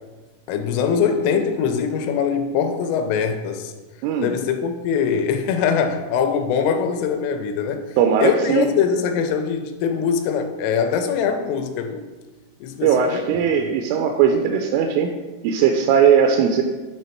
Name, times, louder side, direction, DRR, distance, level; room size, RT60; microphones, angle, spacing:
voice 1, 0.5-3.7 4.2-7.9 8.2-12.0 12.6-13.3, left 7 dB, 85° left, 7 dB, 3.1 m, -22 dB
voice 2, 4.0-4.4 8.0-8.7 12.8-15.1 15.4-16.6, right 7 dB, 85° right, 4 dB, 3.0 m, -18 dB
9.8 x 3.3 x 4.4 m, 1.2 s
omnidirectional pair, 5.9 m